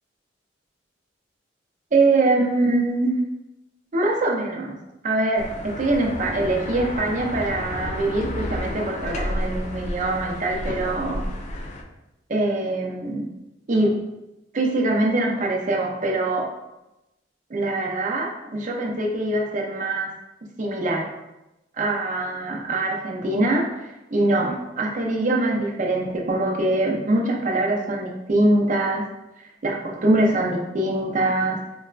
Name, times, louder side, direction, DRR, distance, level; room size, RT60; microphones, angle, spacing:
voice 1, 1.9-3.1 3.9-4.8 5.0-11.2 12.3-13.3 13.7-14.0 14.5-16.5 17.5-20.1 20.6-21.1 21.8-29.0 29.4-31.6, right 2 dB, 40° right, 0 dB, 0.5 m, -23 dB
sound 1, 5.3-11.8, left 1 dB, 40° left, 0.3 m, -31 dB
3.9 x 2.2 x 2.4 m, 0.94 s
head